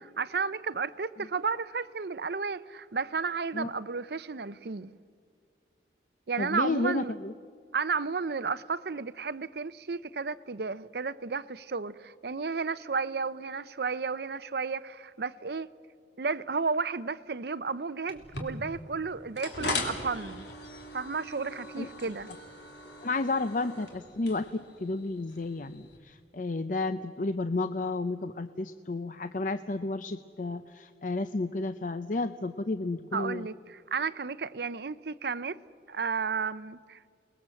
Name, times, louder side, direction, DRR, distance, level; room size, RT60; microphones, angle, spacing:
voice 1, 0.2-4.9 6.3-7.1 7.7-15.7 16.2-20.4 20.9-22.3 33.1-35.6 35.9-37.0, right 5 dB, 65° right, 0.6 m, -33 dB
voice 2, 6.4-7.3 21.8-21.9 23.0-33.5, left 2 dB, 45° left, 0.6 m, -32 dB
sound 1, 18.1-26.0, left 2 dB, 75° left, 3.4 m, -40 dB
29.5 x 20.5 x 7.7 m
head